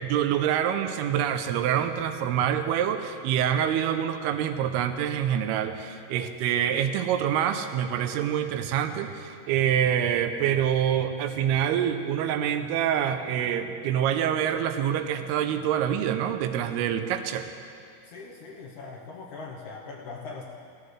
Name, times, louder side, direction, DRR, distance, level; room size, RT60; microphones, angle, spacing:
voice 1, 0.0-17.5, right 9 dB, 90° right, 8 dB, 2.7 m, -26 dB
voice 2, 18.0-20.4, left 4 dB, 70° left, -2 dB, 2.0 m, -41 dB
17.0 x 13.5 x 3.2 m, 2.3 s
omnidirectional pair, 4.4 m